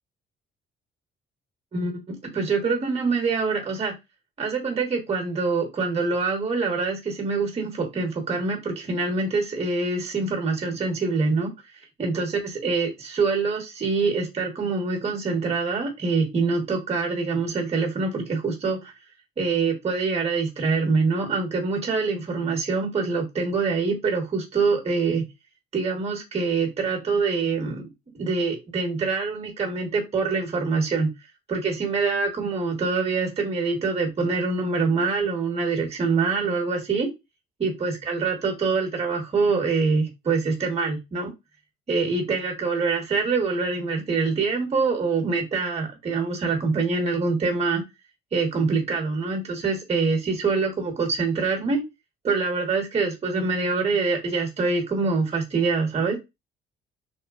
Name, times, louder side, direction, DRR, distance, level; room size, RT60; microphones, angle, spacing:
voice 1, 1.7-3.9 4.4-11.5 12.0-18.9 19.4-25.2 25.7-27.9 28.2-31.1 31.5-37.1 37.6-41.3 41.9-47.8 48.3-51.8 52.2-56.2, right 4 dB, 30° right, 3 dB, 0.9 m, -25 dB
3.0 x 2.1 x 2.3 m, 0.23 s
cardioid pair, 90°, 20 cm